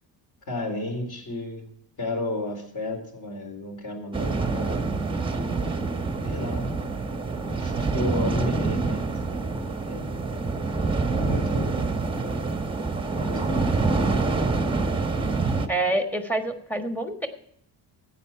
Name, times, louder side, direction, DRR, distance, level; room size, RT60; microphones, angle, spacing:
voice 1, 0.5-1.7 2.0-4.9 6.2-6.8 7.5-9.6 9.8-10.2 11.1-11.8 13.2-13.9, left 1 dB, 45° left, 4 dB, 3.9 m, -33 dB
sound 1, 4.1-15.7, right 3 dB, 10° right, 1.0 m, -26 dB
voice 2, 15.7-17.3, right 2 dB, 5° left, 5 dB, 1.4 m, -26 dB
13.5 x 9.4 x 4.5 m, 0.70 s
cardioid pair, 150°, 42 cm